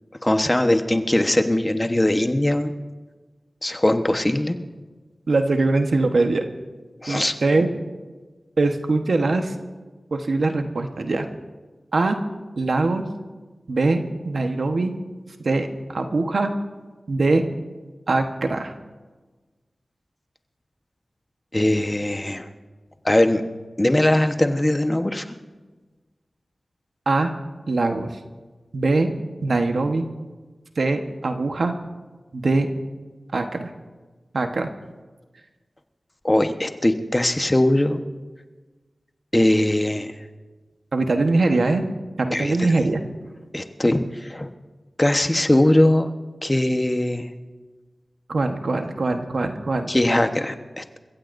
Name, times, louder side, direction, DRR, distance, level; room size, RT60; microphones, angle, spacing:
voice 1, 0.2-2.7 3.6-4.6 7.0-7.3 21.5-22.5 23.0-23.4 23.8-25.2 36.2-38.0 39.3-40.1 42.3-42.5 43.5-44.5 45.0-46.1 46.4-47.3 49.9-51.0, left 1 dB, 25° left, 7 dB, 1.1 m, -20 dB
voice 2, 5.3-6.4 7.1-7.7 8.6-9.5 10.1-11.3 11.9-12.2 12.6-13.0 13.7-14.9 15.4-16.5 17.1-17.4 18.1-18.7 27.1-27.3 27.7-28.2 28.7-29.1 29.4-30.1 30.8-31.7 32.3-32.7 33.3-33.7 34.3-34.7 40.9-41.8 42.2-43.0 48.3-49.9, right 3 dB, 75° right, 5 dB, 1.2 m, -22 dB
29.5 x 15.5 x 2.7 m, 1.3 s
cardioid pair, 40°, 0 cm